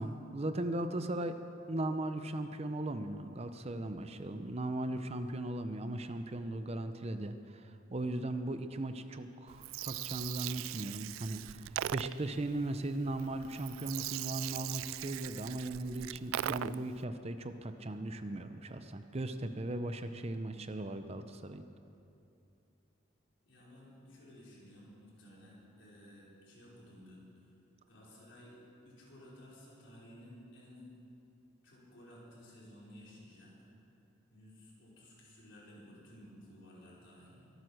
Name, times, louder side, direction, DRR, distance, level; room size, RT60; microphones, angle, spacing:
voice 1, 0.0-1.4 1.7-21.6, right 1 dB, 30° right, 9 dB, 0.6 m, -38 dB
Gurgling, 9.5-17.0, right 13 dB, 90° right, 0.3 m, -40 dB
voice 2, 23.4-27.3 27.9-28.6 28.8-30.9 31.6-33.5 34.3-37.5, left 1 dB, 65° left, -6 dB, 5.1 m, -55 dB
23.5 x 9.2 x 6.4 m, 2.6 s
head